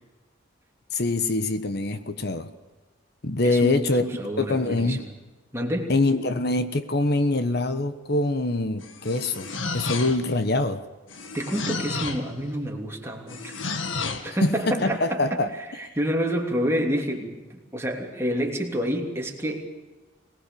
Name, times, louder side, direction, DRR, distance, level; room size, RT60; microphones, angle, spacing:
voice 1, 0.9-2.5 3.2-4.0 4.4-5.0 5.9-9.5 9.7-10.8 14.4-15.5, left 2 dB, 55° left, 10 dB, 1.2 m, -24 dB
voice 2, 3.4-5.1 5.5-5.9 11.3-13.5 14.2-19.7, equal, 15° right, 0 dB, 3.1 m, -28 dB
sound 1, 8.8-10.4 11.1-12.3 13.3-14.3, left 4 dB, 75° left, 1.9 m, -32 dB
24.0 x 19.5 x 7.0 m, 1.2 s
head